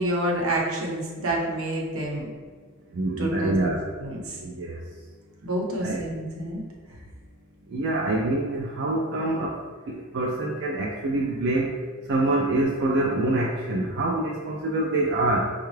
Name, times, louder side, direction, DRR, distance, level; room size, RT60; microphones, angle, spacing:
voice 1, 0.0-2.3 3.2-3.7 4.0-4.4 5.4-6.6, right 1 dB, 80° right, -2 dB, 0.9 m, -28 dB
voice 2, 2.9-3.8 4.4-4.8 5.8-6.0 7.7-9.6 9.9-15.5, right 2 dB, 55° right, -3 dB, 0.4 m, -26 dB
5.4 x 2.3 x 3.1 m, 1.5 s
head